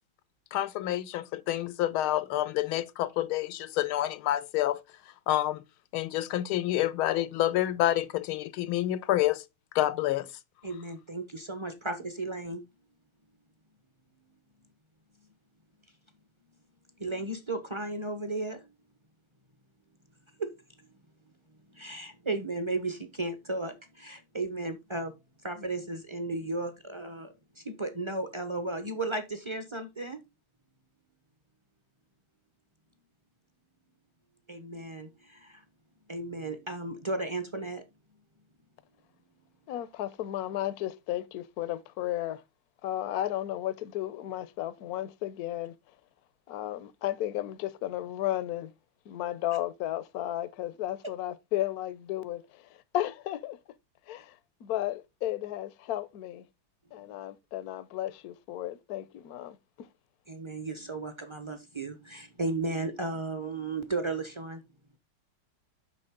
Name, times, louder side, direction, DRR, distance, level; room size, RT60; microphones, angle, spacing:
voice 1, 0.5-4.8 5.3-5.6 5.9-9.4 9.7-10.3, left 14 dB, 85° left, 1.6 m, -28 dB
voice 2, 10.6-12.6 17.0-18.6 20.4-20.5 21.8-23.7 24.0-25.1 25.4-27.3 27.8-30.2 34.5-35.1 36.1-37.8 60.3-64.6, right 2 dB, 25° right, 0.6 m, -34 dB
voice 3, 39.7-42.4 42.8-45.7 46.5-48.7 49.1-53.6 54.1-56.5 56.9-59.9, left 13 dB, 65° left, 1.0 m, -34 dB
9.0 x 6.2 x 3.6 m
omnidirectional pair, 2.3 m